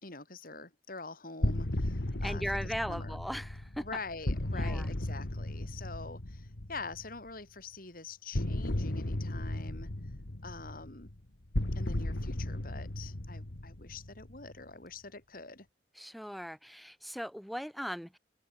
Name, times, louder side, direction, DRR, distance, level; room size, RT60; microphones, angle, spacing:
voice 1, 0.0-3.2 3.8-9.9 10.4-11.1 11.7-15.7, left 4 dB, 55° left, 4.9 m, -45 dB
sound 1, 1.4-7.2 8.3-14.6, left 1 dB, 85° left, 1.8 m, -35 dB
voice 2, 2.2-3.9 4.5-4.9 15.9-18.2, equal, ahead, 2.7 m, -38 dB
open air
head